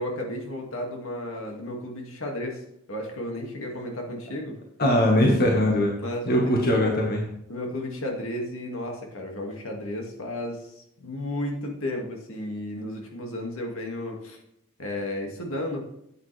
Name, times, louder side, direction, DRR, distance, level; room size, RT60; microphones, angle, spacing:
voice 1, 0.0-2.6 2.9-4.6 6.0-6.4 6.7-6.8 7.5-14.4 14.8-15.8, left 1 dB, 65° left, 1 dB, 2.2 m, -33 dB
voice 2, 4.8-5.9 6.3-7.2, left 1 dB, 45° left, -1 dB, 1.7 m, -21 dB
10.5 x 8.7 x 3.4 m, 0.79 s
head